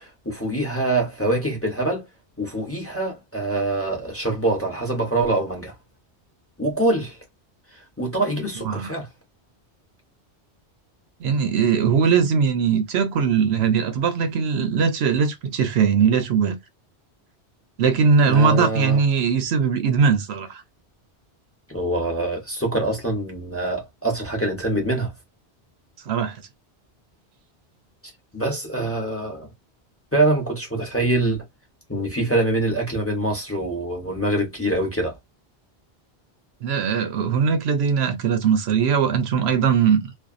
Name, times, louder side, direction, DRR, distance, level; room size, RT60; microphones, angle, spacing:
voice 1, 0.0-2.1 2.4-5.7 6.6-7.2 8.0-9.1 18.2-19.0 21.7-25.1 28.3-29.5 30.1-31.4 31.9-35.2, right 2 dB, 15° left, 0.8 m, -24 dB
voice 2, 11.2-16.6 17.8-20.6 26.1-26.4 36.6-40.0, right 6 dB, 70° right, 0.8 m, -20 dB
2.5 x 2.3 x 2.4 m
omnidirectional pair, 1.1 m